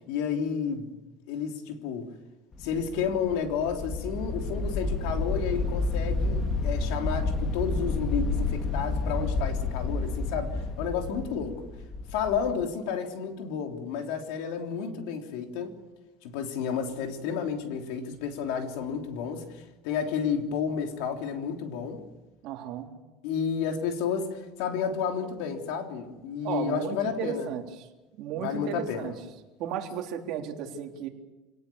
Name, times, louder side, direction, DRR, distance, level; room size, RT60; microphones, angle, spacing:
voice 1, 0.1-0.9 1.3-2.1 2.6-11.7 12.1-15.8 16.2-22.0 23.2-27.5 28.4-29.1, left 7 dB, 75° left, 3.4 m, -31 dB
sound 1, 2.5-12.5, left 3 dB, 25° left, 2.5 m, -30 dB
voice 2, 22.4-22.9 26.4-27.6 28.2-29.1 29.6-31.1, right 8 dB, 55° right, 3.6 m, -34 dB
27.5 x 18.5 x 7.2 m
cardioid pair, 145°, 0 cm